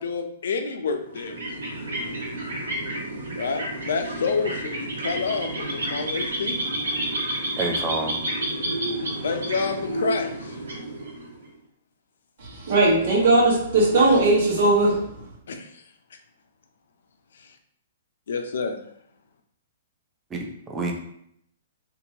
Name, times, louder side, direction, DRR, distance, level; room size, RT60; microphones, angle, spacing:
voice 1, 0.0-1.6 3.4-6.6 9.2-10.5 15.5-15.7 18.3-18.7, left 5 dB, 75° left, 6 dB, 0.4 m, -28 dB
sound 1, 1.1-11.5, right 1 dB, 90° right, 1.1 m, -30 dB
voice 2, 7.6-8.2 20.3-20.9, right 2 dB, 15° right, 0 dB, 0.5 m, -28 dB
voice 3, 12.4-15.0, right 2 dB, 60° right, -4 dB, 1.1 m, -19 dB
2.8 x 2.5 x 2.7 m, 0.72 s
hypercardioid pair, 135°, 0 cm